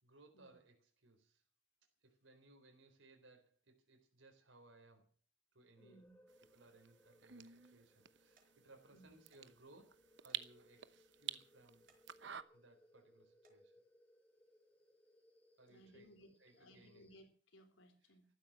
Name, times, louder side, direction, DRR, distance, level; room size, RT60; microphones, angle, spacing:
voice 1, 0.0-1.4 2.0-5.1 5.5-6.1 6.5-11.9 12.5-13.7 15.6-16.1 16.4-17.0, right 2 dB, 90° right, 3 dB, 3.9 m, -65 dB
voice 2, 5.8-6.2 8.9-9.1 15.7-18.3, equal, 85° left, 7 dB, 3.7 m, -63 dB
sound 1, 5.8-17.2, equal, 10° left, 2.5 m, -70 dB
sound 2, 6.3-12.4, right 11 dB, 65° right, 0.9 m, -51 dB
sound 3, 8.4-8.5 9.3-9.5 9.8-9.9 10.3-10.5 10.9-11.0 11.7-12.0 12.5-12.8 13.3-13.6 14.5-14.7 15.2-15.3, right 4 dB, 50° right, 4.7 m, -74 dB
14.0 x 12.5 x 7.4 m, 0.41 s
head